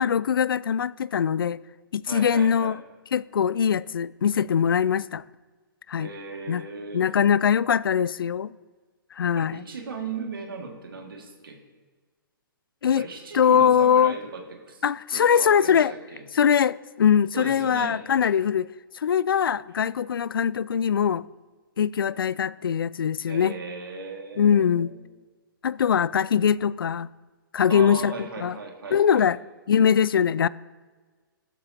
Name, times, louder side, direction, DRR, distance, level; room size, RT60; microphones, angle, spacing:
voice 1, 0.0-1.6 1.9-2.8 3.1-5.2 5.9-6.1 6.5-6.6 6.9-8.5 9.2-9.6 12.8-13.1 13.3-14.2 14.8-15.9 16.3-18.7 18.9-21.3 21.8-23.6 24.4-24.9 25.6-27.1 27.5-28.6 28.9-29.4 29.7-30.5, left 8 dB, 75° left, 0.4 m, -22 dB
voice 2, 2.1-2.8 6.0-7.1 9.4-11.6 12.9-14.8 15.1-16.2 17.3-18.0 23.3-25.0 27.7-29.3, right 4 dB, 75° right, 2.1 m, -37 dB
15.5 x 13.0 x 2.9 m
hypercardioid pair, 125°, 12 cm